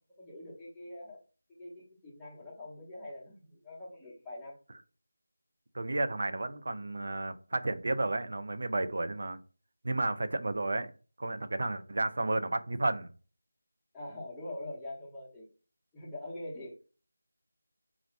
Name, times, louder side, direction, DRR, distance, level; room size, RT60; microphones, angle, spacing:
voice 1, 0.2-1.2 1.6-4.6 13.9-15.5 15.9-16.8, left 1 dB, 5° left, 0.8 m, -44 dB
voice 2, 5.7-9.4 9.8-10.9 11.2-13.1, right 2 dB, 55° right, 0.4 m, -32 dB
2.4 x 2.1 x 3.1 m
figure-of-eight pair, 170°, 0 cm